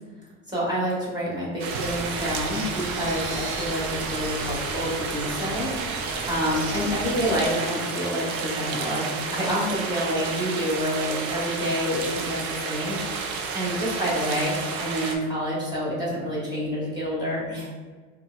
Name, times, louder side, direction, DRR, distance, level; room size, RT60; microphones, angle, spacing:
voice 1, 0.5-5.7 6.1-17.7, equal, 15° right, -6 dB, 1.1 m, -28 dB
sound 1, 1.6-15.2, right 5 dB, 80° right, 0.5 m, -31 dB
sound 2, 1.7-7.5, right 2 dB, 55° right, 0.9 m, -38 dB
4.1 x 2.2 x 2.4 m, 1.4 s
cardioid pair, 125°, 31 cm